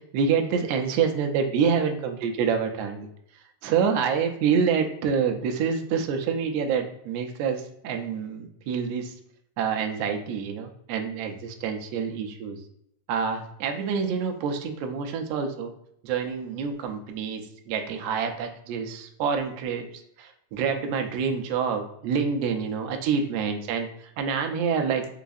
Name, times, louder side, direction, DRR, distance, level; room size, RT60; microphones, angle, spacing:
voice 1, 0.1-3.1 3.6-9.1 9.6-12.6 13.1-15.7 16.0-19.9 20.2-25.1, right 6 dB, 85° right, 5 dB, 1.4 m, -27 dB
4.8 x 2.3 x 2.5 m, 0.75 s
omnidirectional pair, 3.3 m